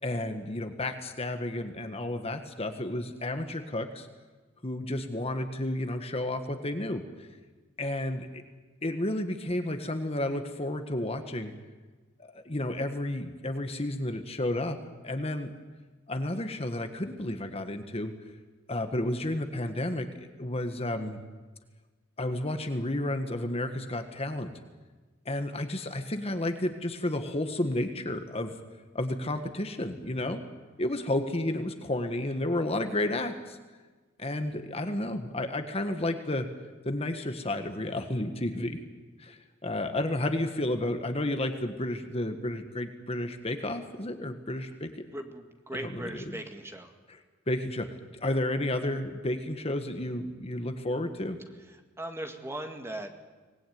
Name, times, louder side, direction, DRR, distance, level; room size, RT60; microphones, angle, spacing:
voice 1, 0.0-4.1 4.6-7.3 7.8-8.3 8.8-11.5 12.2-14.8 15.0-15.5 16.1-18.1 18.7-21.2 22.2-24.5 25.2-28.6 28.9-30.4 30.8-33.6 34.2-36.5 36.8-38.8 39.2-44.9 45.8-46.4 47.1-47.2 47.5-47.9 48.1-51.4, left 1 dB, 30° left, 7 dB, 1.5 m, -31 dB
voice 2, 45.1-46.9 52.0-53.1, right 1 dB, 15° right, 5 dB, 2.0 m, -38 dB
24.5 x 19.5 x 9.4 m, 1.3 s
head